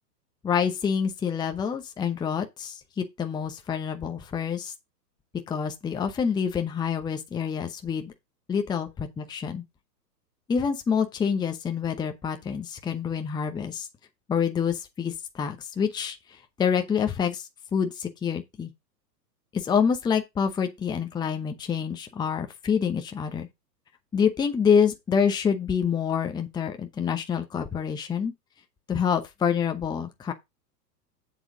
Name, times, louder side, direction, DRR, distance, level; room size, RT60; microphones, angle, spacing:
voice 1, 0.4-4.7 5.5-8.1 8.5-9.6 10.5-13.9 14.3-16.2 16.6-18.7 19.5-23.5 24.1-28.3 28.9-30.3, left 7 dB, 10° left, 0.8 m, -27 dB
7.6 x 7.6 x 3.8 m
hypercardioid pair, 110°, 50 cm